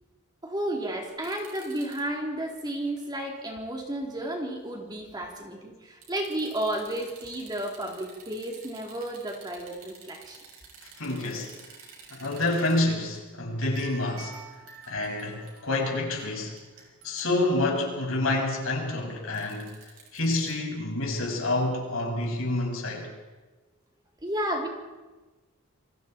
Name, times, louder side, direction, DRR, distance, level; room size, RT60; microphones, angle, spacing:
voice 1, 0.4-10.4 24.2-24.7, right 1 dB, 20° right, 0 dB, 3.5 m, -32 dB
sound 1, 1.1-2.0 2.6-3.0 3.5-3.6 6.0-12.8 13.1-13.3 13.6-17.4 19.3-20.5, right 6 dB, 80° right, 7.0 m, -49 dB
voice 2, 10.8-11.5 12.1-14.4 14.9-16.6 17.0-19.7 20.1-23.1, left 2 dB, 70° left, 0 dB, 6.6 m, -28 dB
28.0 x 25.0 x 4.5 m, 1.2 s
head